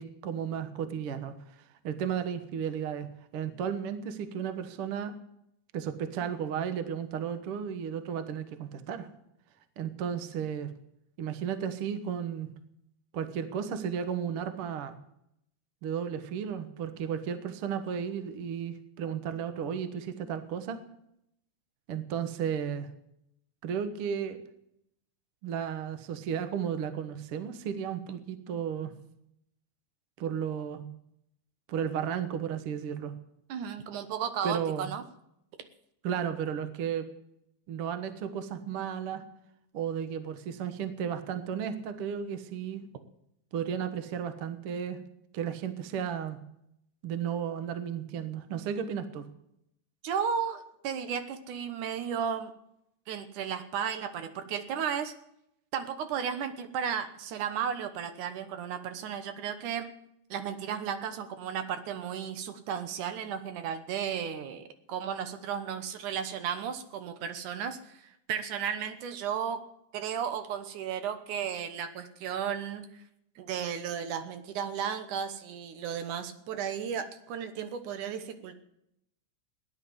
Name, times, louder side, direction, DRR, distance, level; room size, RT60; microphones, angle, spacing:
voice 1, 0.0-1.3 1.8-3.1 3.3-5.1 5.7-9.1 9.8-10.7 11.2-12.5 13.1-14.9 15.8-20.8 21.9-22.9 23.6-24.4 25.4-28.9 30.2-30.9 31.7-33.1 34.4-34.9 36.0-37.1 37.7-39.2 39.7-42.8 43.5-45.0 45.3-46.4 47.0-49.3, right 8 dB, 55° right, 10 dB, 1.8 m, -34 dB
voice 2, 33.5-35.0 50.0-52.5 53.1-55.1 55.7-59.9 60.3-69.6 69.9-73.0 73.4-78.6, right 8 dB, 80° right, 9 dB, 2.6 m, -34 dB
16.0 x 10.5 x 7.9 m, 0.77 s
omnidirectional pair, 3.6 m